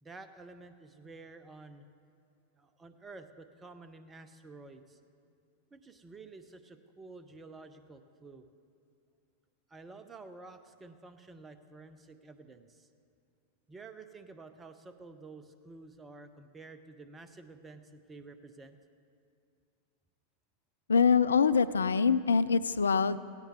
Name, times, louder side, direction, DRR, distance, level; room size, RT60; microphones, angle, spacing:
voice 1, 0.0-1.9 2.6-5.0 5.7-8.5 9.7-12.9 13.7-18.8, right 3 dB, 15° right, 10 dB, 0.8 m, -51 dB
voice 2, 20.9-23.2, left 5 dB, 70° left, 14 dB, 0.3 m, -24 dB
17.0 x 16.5 x 3.1 m, 2.4 s
figure-of-eight pair, 90°, 0 cm